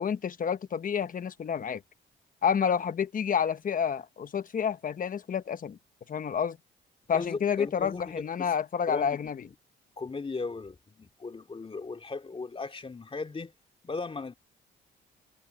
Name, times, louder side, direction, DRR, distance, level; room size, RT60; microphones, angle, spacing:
voice 1, 0.0-1.8 2.4-5.8 6.1-6.6 7.1-9.4, left 7 dB, 45° left, 1.1 m, -29 dB
voice 2, 7.1-8.5 8.9-9.2 10.0-13.5 13.8-14.3, left 4 dB, 25° left, 2.5 m, -37 dB
cardioid pair, 90°, 20 cm